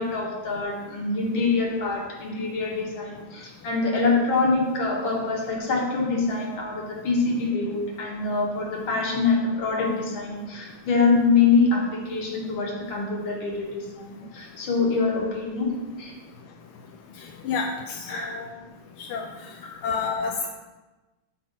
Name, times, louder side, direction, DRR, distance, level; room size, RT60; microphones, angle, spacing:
voice 1, 0.0-15.7 16.0-16.1 18.1-18.3 19.6-19.8, left 4 dB, 65° left, -1 dB, 2.3 m, -25 dB
voice 2, 17.4-18.5 19.0-19.3 19.8-20.5, left 5 dB, 85° left, 2 dB, 1.5 m, -29 dB
9.3 x 3.5 x 6.8 m, 1.1 s
omnidirectional pair, 2.3 m